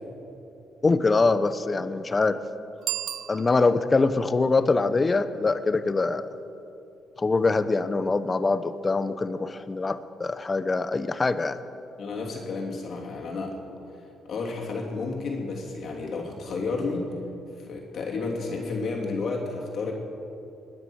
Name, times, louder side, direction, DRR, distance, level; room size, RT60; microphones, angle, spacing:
voice 1, 0.8-2.4 3.3-6.3 7.2-11.6, left 3 dB, 30° left, 13 dB, 0.8 m, -24 dB
Bicycle bell, 2.8-4.0, right 11 dB, 80° right, 0.4 m, -34 dB
voice 2, 12.0-13.5 14.3-17.1 17.6-19.9, left 3 dB, 60° left, -1 dB, 3.0 m, -31 dB
20.5 x 9.5 x 6.3 m, 2.7 s
cardioid pair, 90°, 0 cm